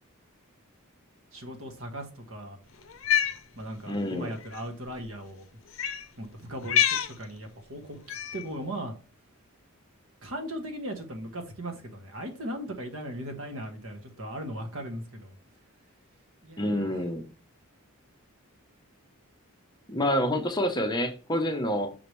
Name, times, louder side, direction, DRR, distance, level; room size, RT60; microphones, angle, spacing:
voice 1, 1.3-2.6 3.5-5.4 6.2-9.0 10.2-15.4 16.4-16.9, right 1 dB, 65° right, 1.4 m, -38 dB
Cat, 2.9-3.4 4.4-4.6 5.7-6.0 6.6-7.1 8.1-8.4, left 9 dB, 60° left, 0.7 m, -26 dB
voice 2, 3.9-4.3 16.6-17.3 19.9-21.9, equal, 20° left, 0.8 m, -28 dB
6.0 x 4.9 x 3.1 m
head